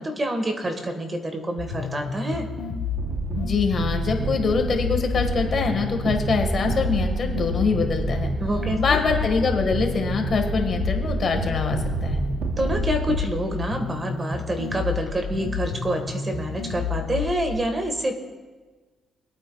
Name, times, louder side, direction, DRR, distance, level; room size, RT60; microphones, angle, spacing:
voice 1, 0.0-2.5 8.4-9.0 12.6-18.2, right 1 dB, 25° right, 5 dB, 1.6 m, -27 dB
sound 1, 1.6-17.6, left 6 dB, 70° left, 1.3 m, -31 dB
sound 2, 3.0-13.2, right 3 dB, 70° right, 0.9 m, -29 dB
voice 2, 3.4-8.3 8.8-12.2, left 4 dB, 50° left, 4 dB, 1.6 m, -24 dB
24.0 x 8.8 x 2.4 m, 1.4 s
cardioid pair, 90°, 0 cm